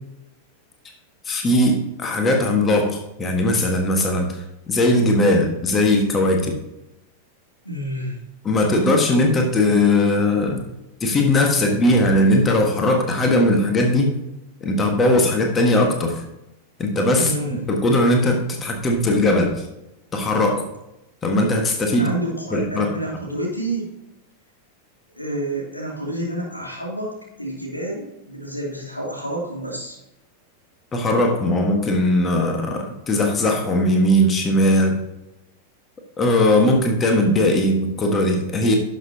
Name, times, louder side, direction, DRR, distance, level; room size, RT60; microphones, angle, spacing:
voice 1, 1.2-6.5 8.4-10.6 11.0-14.1 14.6-16.2 16.8-19.6 20.1-20.7 21.2-22.1 22.5-22.9 30.9-35.0 36.2-38.8, left 1 dB, 20° left, 2 dB, 1.5 m, -19 dB
voice 2, 7.6-8.2 17.2-17.6 21.9-23.9 25.2-30.0, right 1 dB, 85° left, -2 dB, 2.6 m, -29 dB
11.5 x 6.6 x 2.8 m, 0.90 s
figure-of-eight pair, 90°, 0 cm